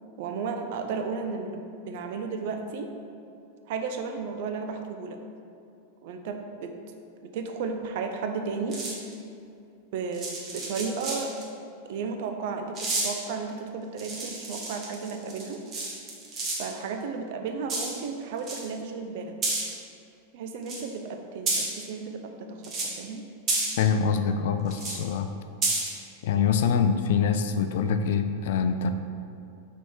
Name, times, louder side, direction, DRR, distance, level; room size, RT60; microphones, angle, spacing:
voice 1, 0.2-1.6 1.9-2.9 3.7-5.2 6.0-6.8 7.3-8.8 9.9-11.3 11.9-15.6 16.6-19.3 20.3-22.6 23.0-23.2, right 5 dB, 50° right, 5 dB, 0.5 m, -33 dB
sound 1, 8.7-9.1 10.1-11.4 12.8-13.2 14.0-16.7 17.7-18.1 18.4-18.7 19.4-19.6 20.7-20.8 21.5-21.8 22.6-23.0 23.5-23.7 24.7-25.0 25.6-25.9, right 2 dB, 30° right, 1.2 m, -30 dB
voice 2, 23.8-25.3 26.2-28.9, left 6 dB, 55° left, 8 dB, 0.3 m, -24 dB
5.9 x 3.7 x 4.5 m, 2.6 s
figure-of-eight pair, 90°, 0 cm